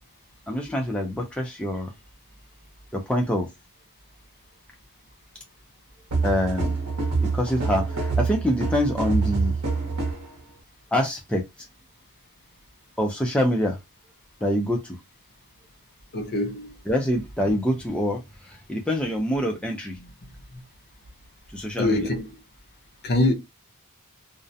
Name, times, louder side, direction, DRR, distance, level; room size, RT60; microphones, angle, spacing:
voice 1, 0.5-1.9 2.9-3.5 6.2-6.7 7.2-9.5 10.9-11.4 13.0-13.8 14.4-15.0 16.9-18.2 18.5-20.0 21.5-22.1, equal, 5° left, 0.4 m, -25 dB
sound 1, 6.1-10.3, right 4 dB, 75° right, 0.8 m, -26 dB
voice 2, 16.1-16.7 20.0-20.1 21.8-22.3 23.0-23.3, left 1 dB, 45° left, 0.7 m, -24 dB
2.4 x 2.1 x 2.6 m
head